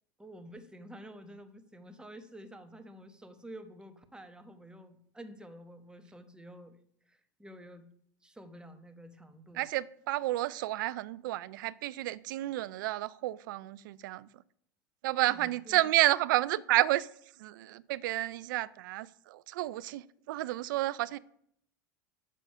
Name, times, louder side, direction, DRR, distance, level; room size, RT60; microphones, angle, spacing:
voice 1, 0.2-6.8 7.1-7.9 8.2-9.7 15.1-15.9, right 1 dB, 10° right, 1.1 m, -50 dB
voice 2, 9.6-14.3 15.0-17.1 17.4-21.2, right 16 dB, 75° right, 0.4 m, -31 dB
7.6 x 6.3 x 5.4 m
hypercardioid pair, 95°, 11 cm